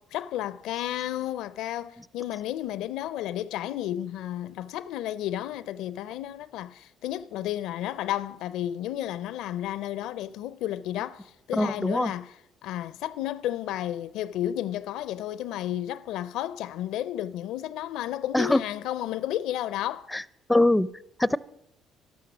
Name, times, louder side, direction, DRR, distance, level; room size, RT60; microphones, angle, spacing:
voice 1, 0.1-12.3 12.6-20.1, left 12 dB, 75° left, 0.4 m, -32 dB
voice 2, 11.5-12.1 18.3-18.6 20.1-20.2 20.5-20.9 21.2-21.4, left 1 dB, 10° left, 0.5 m, -22 dB
12.5 x 12.0 x 6.0 m
hypercardioid pair, 55°, 0 cm